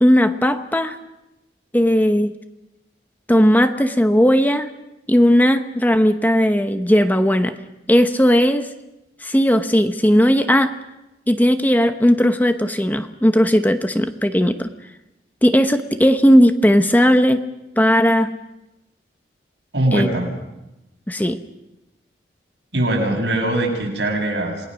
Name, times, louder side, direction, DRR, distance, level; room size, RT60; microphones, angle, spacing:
voice 1, 0.0-1.0 1.7-2.3 3.3-4.7 5.1-7.5 7.9-8.7 9.2-10.7 11.3-14.7 15.4-17.4 17.8-18.3 19.9-20.1 21.1-21.4, equal, 10° left, 8 dB, 0.9 m, -16 dB
voice 2, 19.7-20.3 22.7-24.7, right 1 dB, 75° right, 1 dB, 7.0 m, -21 dB
28.0 x 20.5 x 6.3 m, 0.96 s
head